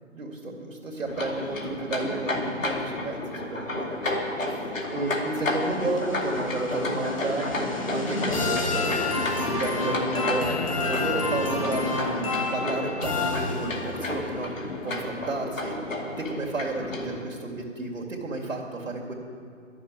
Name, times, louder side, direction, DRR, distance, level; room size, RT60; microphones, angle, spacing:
voice 1, 0.1-8.9 9.1-12.3 12.5-14.5 14.8-15.8 16.2-19.1, right 2 dB, 85° right, -3 dB, 2.4 m, -32 dB
sound 1, 1.1-17.2, left 2 dB, 85° left, 2.4 m, -31 dB
sound 2, 5.3-14.0, left 3 dB, 25° left, 1.2 m, -30 dB
12.0 x 7.3 x 9.9 m, 2.3 s
hypercardioid pair, 170°, 38 cm